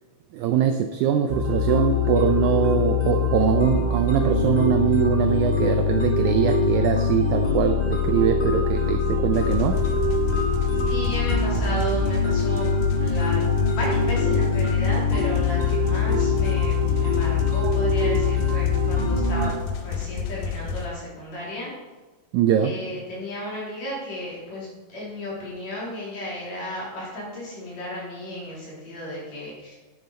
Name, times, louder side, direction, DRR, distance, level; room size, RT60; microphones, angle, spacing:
voice 1, 0.3-9.8 22.3-22.7, right 9 dB, 80° right, 7 dB, 1.7 m, -22 dB
sound 1, 1.3-19.5, left 4 dB, 30° left, 0.8 m, -23 dB
sound 2, 9.3-20.9, left 6 dB, 70° left, 2.0 m, -31 dB
voice 2, 10.8-13.4 13.7-19.5 19.8-21.7 22.6-29.8, left 1 dB, 55° left, -5 dB, 4.2 m, -34 dB
9.4 x 9.3 x 4.3 m, 1.2 s
omnidirectional pair, 4.0 m